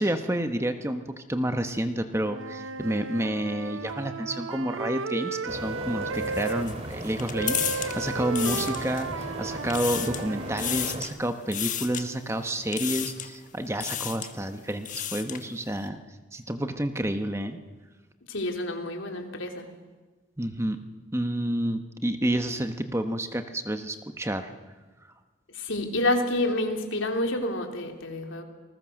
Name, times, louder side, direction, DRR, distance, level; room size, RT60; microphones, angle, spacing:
voice 1, 0.0-16.0 16.3-17.6 20.4-20.8 21.1-24.5, right 1 dB, 15° right, 7 dB, 1.1 m, -29 dB
Wind instrument woodwind instrument, 2.2-6.7 7.3-11.0, right 4 dB, 80° right, 0.8 m, -34 dB
sound 1, 5.5-11.1, right 1 dB, 30° right, 2.7 m, -37 dB
sound 2, 6.1-9.2 9.6-10.3 10.6-11.1 11.5-12.0 12.7-13.4 13.7-14.3 14.7-15.5, left 10 dB, 40° left, 1.3 m, -33 dB
voice 2, 18.3-19.7 25.5-28.4, left 1 dB, 75° left, 3 dB, 3.3 m, -28 dB
28.0 x 20.5 x 6.5 m, 1.3 s
head